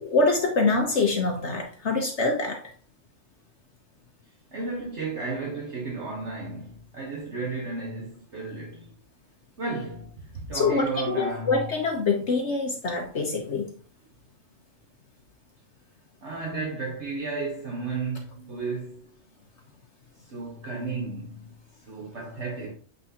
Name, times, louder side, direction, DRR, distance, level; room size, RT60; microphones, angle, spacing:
voice 1, 0.0-2.6 10.5-13.7, left 3 dB, 60° left, 1.2 m, -25 dB
voice 2, 4.5-8.9 9.6-11.7 16.2-19.2 20.2-21.5 21.9-22.7, right 3 dB, 55° right, 1.5 m, -33 dB
8.5 x 4.2 x 2.9 m
omnidirectional pair, 1.4 m